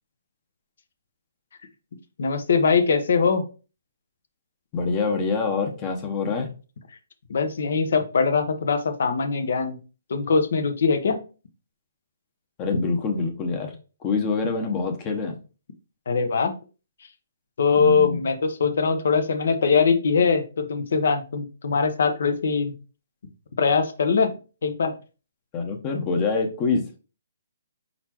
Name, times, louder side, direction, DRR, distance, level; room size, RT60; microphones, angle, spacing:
voice 1, 2.2-3.4 7.3-9.8 10.1-11.2 16.1-16.5 17.6-22.7 23.6-24.3 24.6-24.9, left 5 dB, 65° left, 8 dB, 0.9 m, -22 dB
voice 2, 4.7-6.5 12.6-13.8 14.0-15.4 17.7-18.2 25.5-26.8, left 4 dB, 25° left, 4 dB, 0.8 m, -25 dB
4.5 x 4.1 x 2.9 m, 0.34 s
hypercardioid pair, 155°, 0 cm